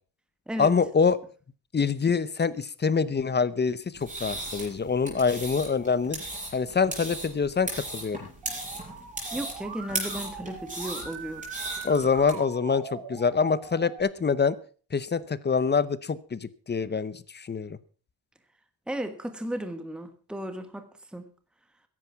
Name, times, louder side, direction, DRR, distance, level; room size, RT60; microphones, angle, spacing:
voice 1, 0.6-1.2 1.7-6.2 6.5-8.3 11.8-14.6 14.9-17.8, left 5 dB, 25° left, 18 dB, 0.7 m, -25 dB
sound 1, 3.9-12.3, right 2 dB, 20° right, 5.9 m, -37 dB
Musical instrument, 8.4-14.0, right 5 dB, 80° right, 4.8 m, -41 dB
voice 2, 9.3-11.5 18.9-20.8 21.1-21.3, right 1 dB, ahead, 8 dB, 1.4 m, -35 dB
14.0 x 11.0 x 5.7 m, 0.40 s
wide cardioid pair, 145°, 43 cm